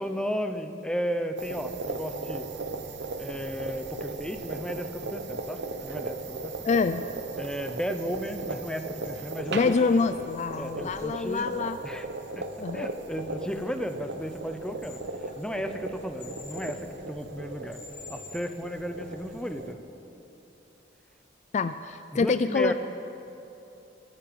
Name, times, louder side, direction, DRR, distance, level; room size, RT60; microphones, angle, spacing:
voice 1, 0.0-2.5 3.2-6.7 7.4-10.0 10.6-11.5 11.8-12.1 12.3-17.8 18.1-19.8 22.1-22.7, equal, 5° left, 8 dB, 0.7 m, -34 dB
sound 1, 1.4-19.7, right 3 dB, 65° right, 0.9 m, -37 dB
voice 2, 6.6-7.0 9.5-11.8 12.6-12.9 21.5-22.7, left 4 dB, 40° left, 11 dB, 0.3 m, -26 dB
sound 2, 7.5-7.6 8.0-9.1 9.4-10.0 10.5-10.6 10.9-11.0 11.4-11.5 14.8-15.0 16.2-16.7 17.7-18.4, left 5 dB, 75° left, 4.0 m, -46 dB
22.5 x 9.5 x 5.3 m, 2.9 s
head